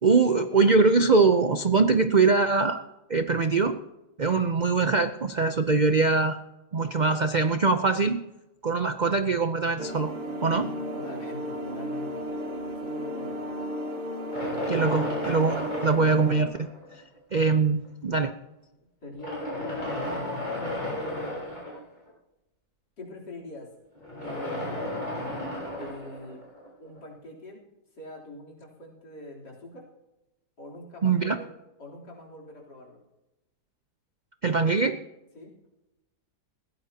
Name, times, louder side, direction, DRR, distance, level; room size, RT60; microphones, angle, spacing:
voice 1, 0.0-2.8 3.1-3.8 4.2-6.4 6.7-8.2 8.6-10.1 10.4-10.7 14.7-16.7 17.3-18.3 31.0-31.4 34.4-35.0, right 4 dB, 60° right, 8 dB, 0.4 m, -22 dB
sound 1, 9.8-16.5, equal, 90° right, 2.6 m, -34 dB
voice 2, 10.6-12.2 12.8-13.4 14.9-15.4 19.0-21.4 23.0-23.7 24.2-25.0 25.8-26.4 26.8-27.6 28.0-29.8 30.6-31.5 31.8-33.0 35.3-35.6, left 1 dB, 80° left, 0 dB, 4.2 m, -43 dB
sound 2, 14.3-17.0 17.8-17.9 19.0-22.1 23.9-27.0, left 1 dB, 25° left, 7.0 m, -34 dB
20.0 x 16.0 x 2.9 m, 0.98 s
omnidirectional pair, 1.8 m